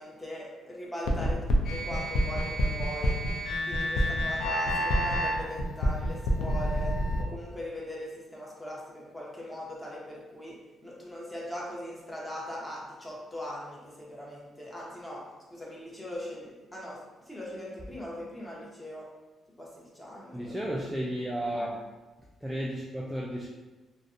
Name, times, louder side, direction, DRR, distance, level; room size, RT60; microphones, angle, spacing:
voice 1, 0.0-3.2 3.7-10.6 10.8-15.2 15.5-17.0 17.3-19.1 19.6-20.4 21.6-21.7, left 1 dB, 10° left, -4 dB, 0.7 m, -40 dB
sound 1, 1.1-7.2, equal, 75° left, 0.4 m, -28 dB
voice 2, 4.0-4.4 20.3-21.8 22.4-23.5, equal, 5° right, -4 dB, 0.3 m, -33 dB
2.5 x 2.1 x 2.5 m, 1.2 s
cardioid pair, 90°, 0 cm